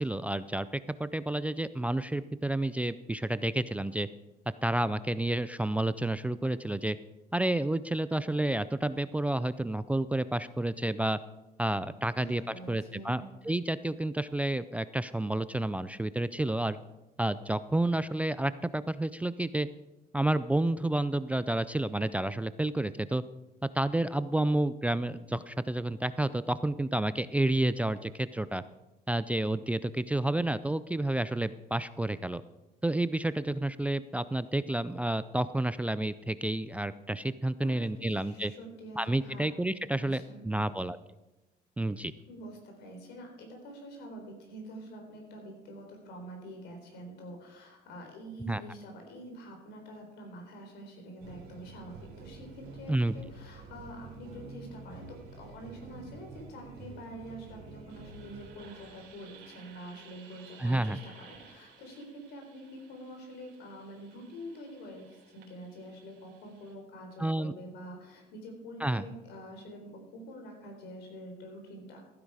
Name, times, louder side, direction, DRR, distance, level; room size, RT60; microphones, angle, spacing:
voice 1, 0.0-4.1 4.6-7.0 7.3-11.2 11.6-12.4 12.7-16.8 17.2-19.7 20.1-23.2 23.6-28.6 29.1-32.4 32.8-38.5 39.0-41.0 41.8-42.1 48.5-48.6 52.9-53.1 60.6-61.0 67.2-67.5 68.8-69.0, right 1 dB, 10° right, 14 dB, 0.4 m, -30 dB
voice 2, 12.1-13.3 37.6-39.5 40.0-40.8 42.3-72.0, right 1 dB, 80° left, 3 dB, 4.1 m, -46 dB
sound 1, 51.2-66.7, right 4 dB, 85° right, 3.8 m, -51 dB
15.0 x 9.6 x 4.8 m, 1.0 s
cardioid pair, 110°, 17 cm